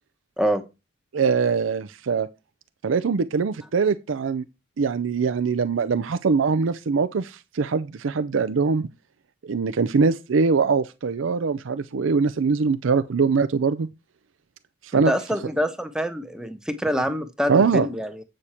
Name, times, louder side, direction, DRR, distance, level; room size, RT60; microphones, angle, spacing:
voice 1, 1.1-2.3 2.8-4.4 4.8-8.9 9.4-13.9 14.8-15.1 17.5-17.9, right 5 dB, 80° right, 0.5 m, -22 dB
voice 2, 14.9-18.2, equal, 5° right, 0.8 m, -26 dB
8.4 x 6.5 x 4.3 m
head